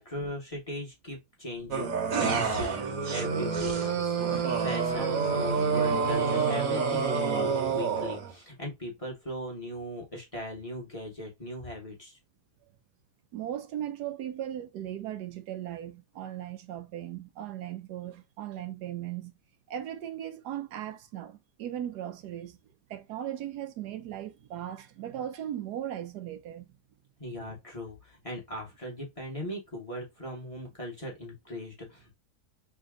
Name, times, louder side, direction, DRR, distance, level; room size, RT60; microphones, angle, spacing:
voice 1, 0.0-12.2 27.2-32.1, equal, 20° left, 1.3 m, -39 dB
sound 1, 1.7-8.3, right 5 dB, 60° right, 1.3 m, -28 dB
voice 2, 13.3-19.3 19.7-22.6 22.9-26.7, right 11 dB, 80° right, 1.2 m, -37 dB
3.5 x 2.8 x 3.6 m
omnidirectional pair, 1.7 m